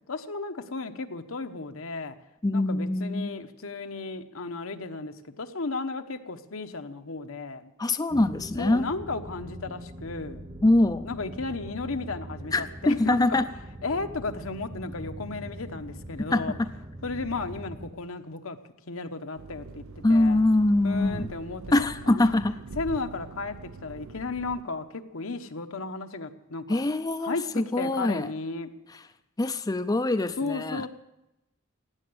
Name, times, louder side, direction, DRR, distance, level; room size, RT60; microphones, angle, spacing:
voice 1, 0.1-2.2 2.5-7.7 8.6-10.5 11.0-13.4 13.8-16.5 17.0-18.6 18.9-20.4 20.8-21.7 22.1-22.3 22.8-26.8 27.2-28.7 30.4-30.9, left 3 dB, 75° left, 7 dB, 1.0 m, -34 dB
voice 2, 2.4-3.3 7.8-8.9 10.6-11.1 12.5-13.4 16.3-16.4 20.0-21.3 21.7-22.6 26.7-28.3 29.4-30.8, left 2 dB, 20° left, 9 dB, 0.4 m, -23 dB
sound 1, 8.1-17.9, right 1 dB, 30° right, 1.0 m, -42 dB
sound 2, 19.4-24.6, right 4 dB, 85° right, 0.6 m, -43 dB
16.5 x 9.8 x 7.9 m, 0.92 s
head